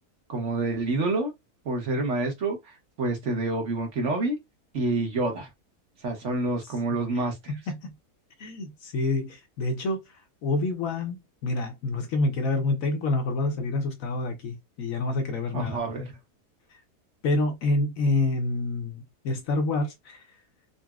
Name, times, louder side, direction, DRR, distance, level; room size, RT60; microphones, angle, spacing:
voice 1, 0.3-1.3 1.6-2.6 3.0-4.4 4.7-5.5 6.0-7.6 15.5-16.1, right 2 dB, 55° right, 1.2 m, -27 dB
voice 2, 7.5-7.9 8.4-10.0 10.4-15.8 17.2-20.2, left 2 dB, 65° left, 1.0 m, -27 dB
3.9 x 2.1 x 2.3 m
omnidirectional pair, 1.7 m